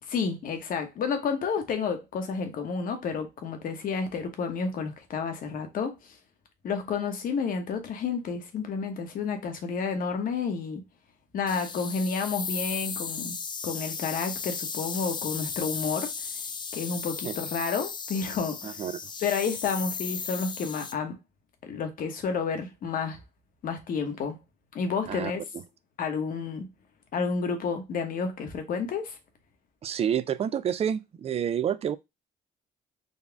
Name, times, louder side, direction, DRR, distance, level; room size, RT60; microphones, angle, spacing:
voice 1, 0.1-6.2 6.6-10.8 11.3-13.4 13.6-16.1 16.7-18.8 19.2-21.2 21.6-23.2 23.6-24.4 24.7-25.4 26.0-26.7 27.1-29.2, left 5 dB, 55° left, 1.2 m, -30 dB
sound 1, 11.5-20.9, left 5 dB, 25° left, 0.4 m, -35 dB
voice 2, 18.6-19.0 25.1-25.3 29.8-32.0, right 9 dB, 35° right, 0.4 m, -28 dB
4.0 x 2.4 x 3.4 m
cardioid pair, 110°, 17 cm